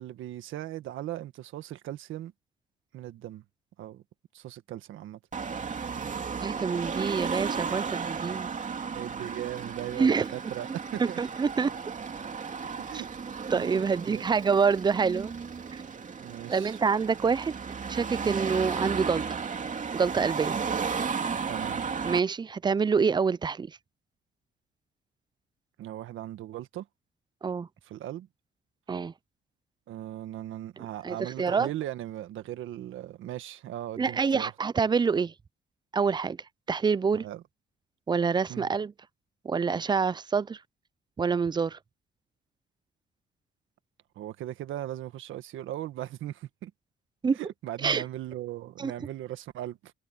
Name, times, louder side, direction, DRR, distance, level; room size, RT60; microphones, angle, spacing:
voice 1, 0.0-2.3 2.9-3.4 3.8-4.0 4.3-5.2 8.9-11.2 12.8-13.1 13.5-14.2 16.2-16.8 21.5-21.8 25.8-26.9 27.8-28.3 29.9-34.5 37.1-37.4 38.5-38.7 44.1-46.7 47.4-49.9, right 13 dB, 80° right, 1.5 m, -38 dB
Car passing by / Traffic noise roadway noise / Engine, 5.3-22.2, right 5 dB, 40° right, 2.7 m, -34 dB
voice 2, 6.4-8.5 10.0-10.3 11.0-11.7 13.5-15.3 15.7-15.8 16.5-17.5 17.9-19.2 19.9-20.6 22.0-23.8 27.4-27.7 28.9-29.1 31.0-31.7 34.0-35.3 35.9-36.4 36.7-37.2 38.1-38.9 39.4-40.6 41.2-41.8 47.2-47.4 47.8-48.0 48.8-48.9, right 5 dB, 20° right, 0.4 m, -26 dB
cardioid pair, 90°, 20 cm